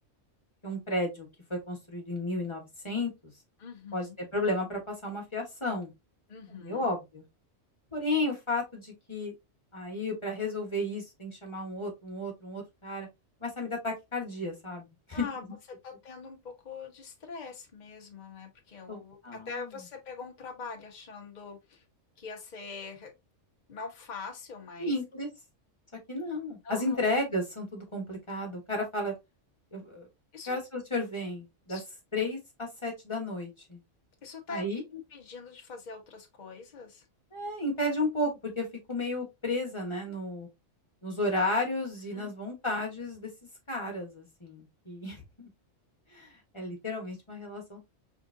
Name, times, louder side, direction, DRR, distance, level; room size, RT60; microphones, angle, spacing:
voice 1, 0.6-3.1 3.9-5.9 6.5-7.2 7.9-9.3 9.7-13.1 13.4-15.2 18.9-19.7 24.8-25.3 26.1-29.1 29.7-30.1 30.5-31.8 32.1-33.8 34.5-34.8 37.3-40.5 41.0-43.3 43.7-45.5 46.1-47.8, left 2 dB, 25° left, 1.6 m, -33 dB
voice 2, 3.6-4.2 6.3-6.9 15.1-15.4 15.8-21.8 22.2-23.1 23.7-24.9 26.6-27.0 30.3-30.5 31.7-31.8 34.2-34.6 34.9-37.0 42.1-42.3, left 4 dB, 40° left, 1.0 m, -43 dB
5.0 x 3.6 x 2.6 m
omnidirectional pair, 1.2 m